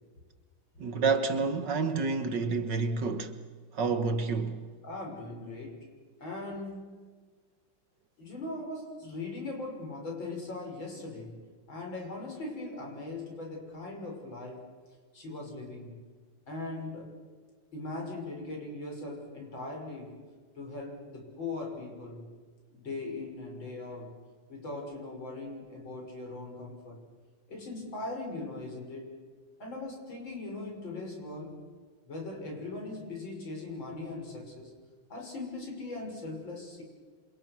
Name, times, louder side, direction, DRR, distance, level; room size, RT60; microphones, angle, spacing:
voice 1, 0.8-3.4 3.7-4.6, right 4 dB, 60° right, 2.0 m, -29 dB
voice 2, 4.8-5.8 6.2-6.9 8.2-14.6 15.1-16.0 16.5-17.1 17.7-20.2 20.6-22.3 22.7-24.2 24.5-27.0 27.5-29.1 29.6-31.6 32.1-34.7 35.1-36.8, left 2 dB, 65° left, 7.2 m, -40 dB
27.5 x 27.5 x 6.3 m
omnidirectional pair, 2.3 m